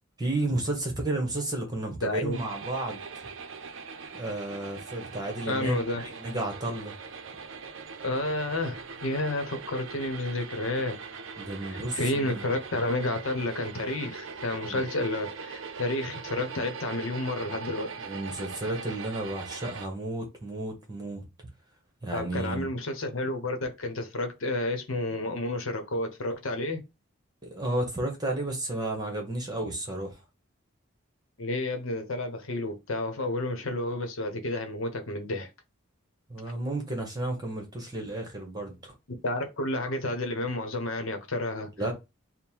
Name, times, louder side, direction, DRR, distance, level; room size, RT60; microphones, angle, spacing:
voice 1, 0.2-3.0 4.1-6.9 11.4-12.4 14.7-14.8 18.0-21.2 22.0-22.7 27.4-30.2 36.3-38.9 41.8-41.9, right 2 dB, 20° right, 1.0 m, -32 dB
voice 2, 2.0-2.4 5.4-6.0 8.0-11.0 11.7-17.9 22.1-26.8 31.4-35.5 39.2-41.7, left 2 dB, 70° left, 0.9 m, -31 dB
sound 1, 2.3-19.9, right 5 dB, 65° right, 0.5 m, -41 dB
3.6 x 2.1 x 4.4 m
head